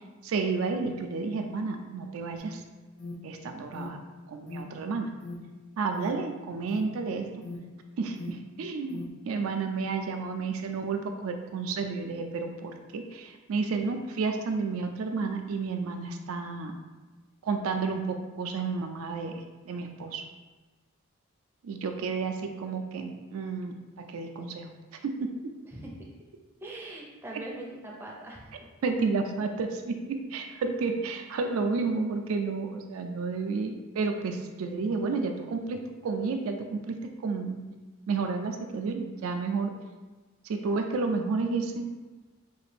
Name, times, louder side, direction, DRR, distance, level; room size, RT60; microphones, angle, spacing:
voice 1, 0.2-2.6 3.2-4.0 4.3-5.1 5.8-7.3 8.0-16.8 17.4-19.3 19.7-20.2 21.6-24.7 25.0-25.3 28.8-37.6 38.1-39.8 40.4-41.9, right 4 dB, 75° right, 5 dB, 0.4 m, -31 dB
Alarm, 2.4-9.1, left 2 dB, 60° left, 0.4 m, -43 dB
voice 2, 25.7-26.2 26.6-28.7, right 1 dB, 10° right, -2 dB, 0.5 m, -42 dB
3.9 x 2.5 x 3.2 m, 1.3 s
head